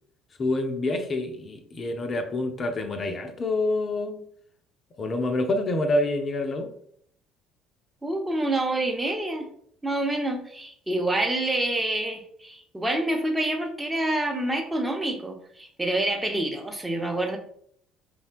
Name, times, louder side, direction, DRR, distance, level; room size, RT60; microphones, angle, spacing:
voice 1, 0.4-4.2 5.0-6.7, left 2 dB, 35° left, 5 dB, 0.4 m, -27 dB
voice 2, 8.0-9.5 9.8-17.4, right 1 dB, 10° right, 3 dB, 0.7 m, -27 dB
4.9 x 2.1 x 2.4 m, 0.65 s
figure-of-eight pair, 55°, 0 cm